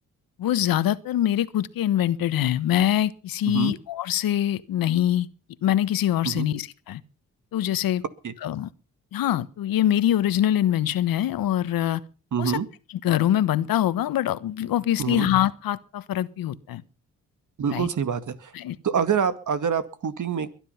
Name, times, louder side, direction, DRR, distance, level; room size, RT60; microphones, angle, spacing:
voice 1, 0.4-5.3 5.6-7.0 7.5-8.0 8.4-8.7 9.1-12.0 12.4-12.6 13.0-16.8 17.7-17.9 18.5-18.8, left 12 dB, 75° left, 1.2 m, -24 dB
voice 2, 12.3-12.7 15.0-15.3 17.6-18.5 18.8-20.5, right 7 dB, 60° right, 2.1 m, -26 dB
22.0 x 10.0 x 5.7 m
supercardioid pair, 55°, 35 cm